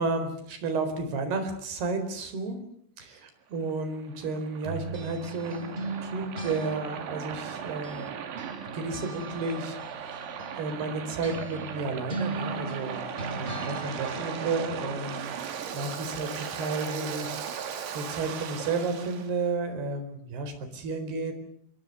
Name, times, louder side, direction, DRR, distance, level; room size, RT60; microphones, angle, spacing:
voice 1, 0.0-2.6 3.0-8.1 8.7-13.0 13.3-15.3 15.7-21.3, right 3 dB, 55° right, 9 dB, 6.1 m, -32 dB
Waves surf, 3.5-19.3, right 7 dB, 75° right, 4.8 m, -38 dB
sound 1, 4.6-8.1 8.4-14.8, right 2 dB, 15° right, 2.6 m, -39 dB
27.5 x 23.0 x 6.8 m, 0.69 s
omnidirectional pair, 5.5 m